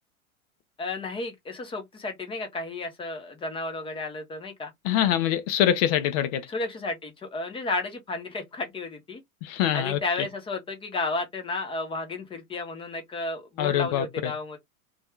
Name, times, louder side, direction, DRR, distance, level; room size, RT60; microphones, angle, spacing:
voice 1, 0.8-4.7 6.5-9.2 9.7-14.6, left 3 dB, 15° left, 0.8 m, -32 dB
voice 2, 4.8-6.4 9.4-10.0 13.6-14.3, left 11 dB, 30° left, 0.4 m, -24 dB
2.6 x 2.4 x 3.2 m
figure-of-eight pair, 90°, 42 cm